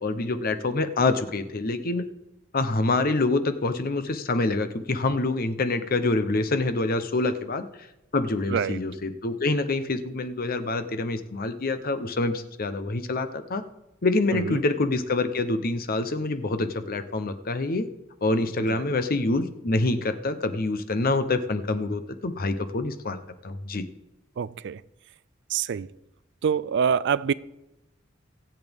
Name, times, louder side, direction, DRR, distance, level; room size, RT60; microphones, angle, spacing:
voice 1, 0.0-2.0 2.5-7.6 8.1-13.6 14.0-17.9 18.2-23.8, left 2 dB, 50° left, 0.8 m, -26 dB
voice 2, 8.5-8.8 14.3-14.6 18.6-18.8 24.4-24.8 25.5-25.9 26.4-27.3, right 7 dB, 60° right, 0.4 m, -26 dB
22.5 x 8.1 x 3.6 m
head